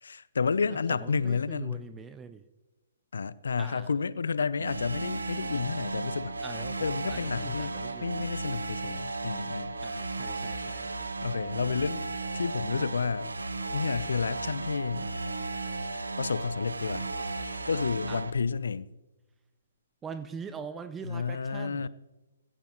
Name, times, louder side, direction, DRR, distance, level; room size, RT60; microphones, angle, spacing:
voice 1, 0.0-1.9 3.1-6.3 6.8-9.8 11.2-12.1 12.3-13.3 13.7-15.1 15.5-15.7 16.2-17.1 17.7-18.9 21.1-21.9, left 5 dB, 65° left, 0.6 m, -31 dB
voice 2, 0.9-2.4 3.6-3.9 6.4-8.2 9.8-10.9 18.1-18.3 20.0-21.9, right 6 dB, 10° right, 0.6 m, -43 dB
sound 1, 4.6-18.3, right 3 dB, 75° right, 1.1 m, -35 dB
16.5 x 15.0 x 3.1 m
figure-of-eight pair, 125°, 0 cm